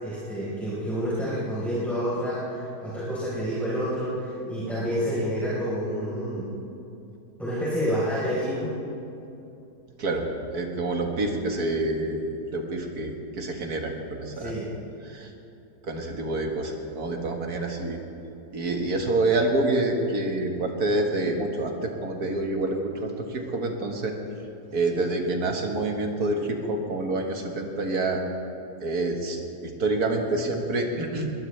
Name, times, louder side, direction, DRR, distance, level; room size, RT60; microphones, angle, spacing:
voice 1, 0.0-6.5 7.4-8.7 14.3-14.7, equal, ahead, -10 dB, 4.2 m, -28 dB
voice 2, 10.5-12.2 12.5-14.5 15.0-15.3 15.8-18.0 18.5-24.2 24.7-28.2 28.8-31.3, right 2 dB, 75° right, 2 dB, 2.1 m, -27 dB
21.5 x 19.5 x 3.3 m, 2.8 s
omnidirectional pair, 1.7 m